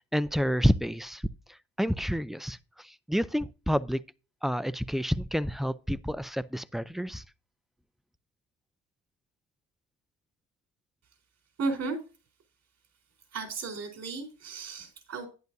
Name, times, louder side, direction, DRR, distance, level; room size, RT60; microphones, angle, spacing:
voice 1, 0.1-1.2 1.8-2.6 3.1-4.0 4.4-7.2, equal, ahead, 0.5 m, -28 dB
voice 2, 11.6-12.0 13.3-15.3, right 3 dB, 55° right, 4.0 m, -34 dB
10.5 x 10.5 x 2.7 m
cardioid pair, 90°, 30 cm